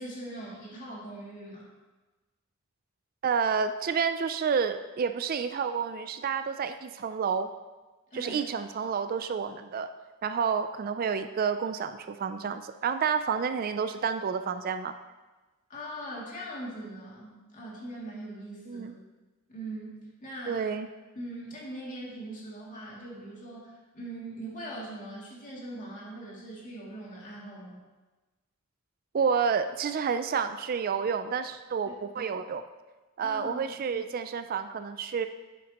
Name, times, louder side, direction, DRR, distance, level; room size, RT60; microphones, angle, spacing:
voice 1, 0.0-1.7 8.1-8.4 15.7-18.9 19.5-20.6 21.2-27.8 32.1-32.2 33.2-34.0, right 1 dB, 40° left, -5 dB, 2.6 m, -41 dB
voice 2, 3.2-7.5 8.1-9.9 10.2-14.9 18.7-18.9 20.5-20.9 29.1-32.6 33.2-35.3, right 6 dB, 45° right, 9 dB, 0.3 m, -29 dB
10.5 x 8.4 x 3.0 m, 1.2 s
head